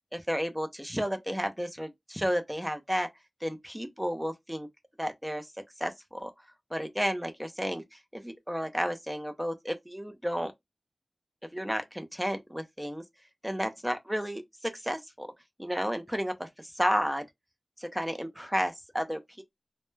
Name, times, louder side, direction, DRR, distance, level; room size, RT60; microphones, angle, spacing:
voice 1, 0.1-3.1 3.4-4.7 5.0-5.5 5.8-6.3 6.7-10.5 11.5-13.0 13.4-15.3 15.6-16.5 16.7-17.3 17.8-19.4, equal, 5° right, 0.5 m, -32 dB
2.1 x 2.1 x 3.1 m
wide cardioid pair, 70°, 0 cm